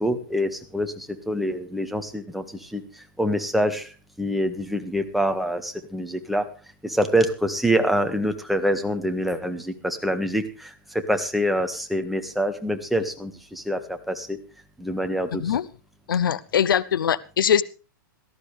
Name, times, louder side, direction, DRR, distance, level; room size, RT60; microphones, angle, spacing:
voice 1, 0.0-6.4 6.8-14.4 14.8-15.5, equal, ahead, 5 dB, 1.7 m, -26 dB
voice 2, 16.1-17.6, left 8 dB, 85° left, 19 dB, 0.7 m, -22 dB
17.5 x 14.0 x 3.4 m, 0.35 s
hypercardioid pair, 125°, 11 cm